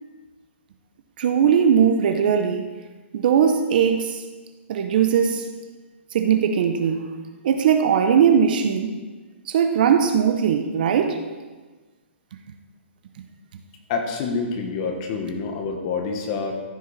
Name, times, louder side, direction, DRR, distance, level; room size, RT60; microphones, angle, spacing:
voice 1, 1.2-2.7 3.1-4.2 4.7-5.5 6.1-7.1 7.4-9.0 9.5-11.2, right 7 dB, 45° right, 7 dB, 0.8 m, -19 dB
voice 2, 13.9-16.5, left 4 dB, 30° left, 4 dB, 1.3 m, -27 dB
14.5 x 6.2 x 4.1 m, 1.3 s
hypercardioid pair, 170°, 7 cm